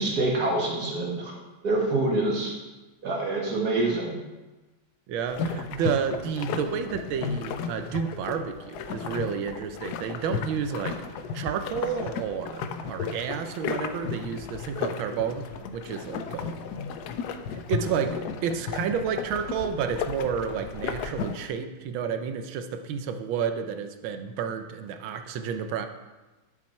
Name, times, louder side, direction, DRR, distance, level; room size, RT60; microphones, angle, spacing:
voice 1, 0.0-1.3 1.6-2.5 3.0-4.2, right 2 dB, 50° right, -2 dB, 2.2 m, -26 dB
voice 2, 5.1-11.0 11.3-15.5 15.7-16.6 17.5-25.9, right 7 dB, 80° right, 7 dB, 1.5 m, -30 dB
sound 1, 5.3-21.5, left 6 dB, 70° left, 1.0 m, -34 dB
10.5 x 6.0 x 4.4 m, 1.2 s
omnidirectional pair, 2.2 m